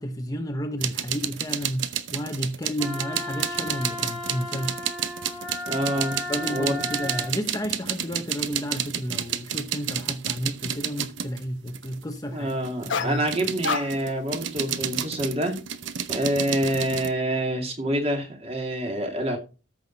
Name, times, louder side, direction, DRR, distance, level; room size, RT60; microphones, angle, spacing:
voice 1, 0.0-4.8 6.3-13.2, equal, 15° left, 0.9 m, -32 dB
sound 1, 0.8-12.0 12.5-17.1, right 9 dB, 65° right, 0.8 m, -31 dB
Wind instrument woodwind instrument, 2.8-7.3, left 2 dB, ahead, 2.0 m, -34 dB
voice 2, 5.7-6.7 12.3-15.6 16.1-19.4, right 1 dB, 30° right, 2.5 m, -27 dB
sound 2, 12.9-13.3 13.6-14.2 14.7-15.0, left 4 dB, 70° left, 1.1 m, -30 dB
13.5 x 6.3 x 4.1 m
head